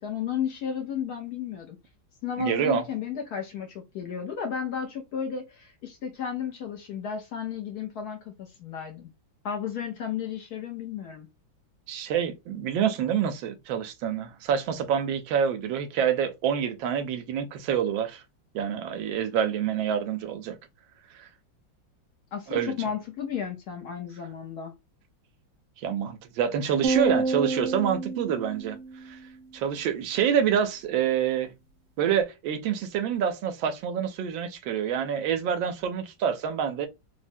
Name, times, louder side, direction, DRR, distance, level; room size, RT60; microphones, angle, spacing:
voice 1, 0.0-1.8 2.2-9.1 9.4-11.3 22.3-24.7, left 8 dB, 70° left, 1.0 m, -33 dB
voice 2, 2.4-2.9 11.9-18.2 18.5-20.6 21.1-21.3 22.5-22.7 25.8-28.8 29.0-29.2 29.5-31.5 32.0-36.9, right 8 dB, 80° right, 1.3 m, -27 dB
sound 1, 26.8-29.3, right 3 dB, 65° right, 1.4 m, -28 dB
3.6 x 2.1 x 2.5 m
omnidirectional pair, 2.1 m